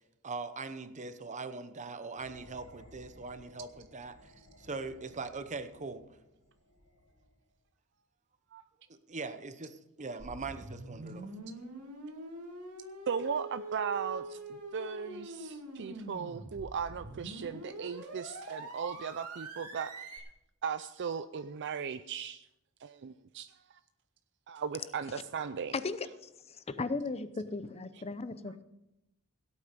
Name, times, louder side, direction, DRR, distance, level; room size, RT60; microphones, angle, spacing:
voice 1, 0.2-6.0 8.9-11.3, right 3 dB, 35° right, 10 dB, 0.9 m, -41 dB
sound 1, 2.2-7.6, equal, 55° left, 4.9 m, -59 dB
sound 2, 10.2-20.2, right 2 dB, 90° right, 2.5 m, -44 dB
voice 2, 13.1-20.2 20.6-22.5 22.8-23.8 24.5-25.7, right 6 dB, 55° right, 11 dB, 0.5 m, -37 dB
voice 3, 25.7-28.6, left 3 dB, 30° left, 13 dB, 0.6 m, -37 dB
16.5 x 8.5 x 5.2 m, 0.88 s
head